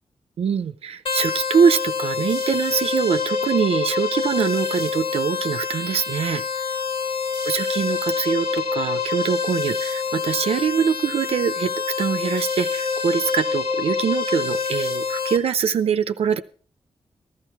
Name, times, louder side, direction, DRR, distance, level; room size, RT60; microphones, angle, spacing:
voice 1, 0.4-6.4 7.4-16.4, right 7 dB, 75° right, 10 dB, 0.6 m, -23 dB
sound 1, 1.1-15.4, left 5 dB, 60° left, 1.7 m, -26 dB
15.0 x 12.0 x 4.6 m, 0.43 s
wide cardioid pair, 120°, 10 cm